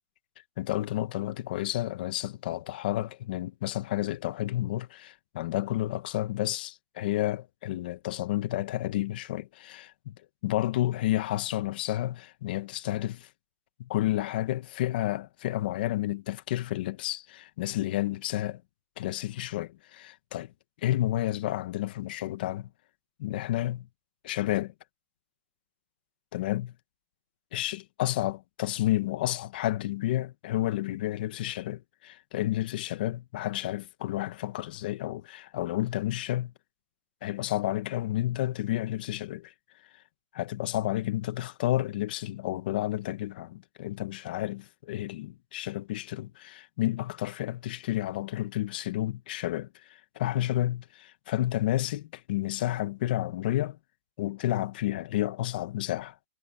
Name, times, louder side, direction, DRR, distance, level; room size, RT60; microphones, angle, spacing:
voice 1, 0.6-10.2 10.4-13.3 13.8-18.6 19.0-20.5 20.8-22.7 23.2-23.9 24.2-24.7 26.3-26.7 27.5-36.5 37.2-39.5 40.3-53.8 54.2-56.2, left 14 dB, 40° left, 1.2 m, -31 dB
hypercardioid pair, 170°, 8 cm